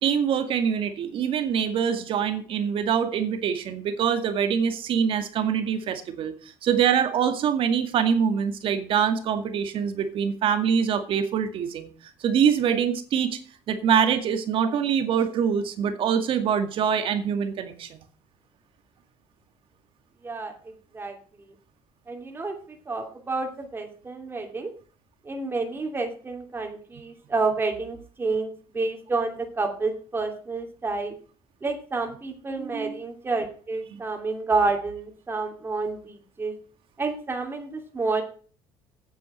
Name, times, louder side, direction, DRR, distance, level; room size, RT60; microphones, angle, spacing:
voice 1, 0.0-6.3 6.6-11.9 12.2-13.4 13.7-17.9 32.6-33.0 33.9-34.0, right 7 dB, 60° right, 9 dB, 2.1 m, -24 dB
voice 2, 20.2-21.2 22.1-22.6 22.9-24.7 25.2-31.1 31.6-36.5 37.0-38.2, right 3 dB, 20° right, 3 dB, 2.8 m, -29 dB
9.3 x 7.7 x 7.8 m, 0.42 s
cardioid pair, 100°, 10 cm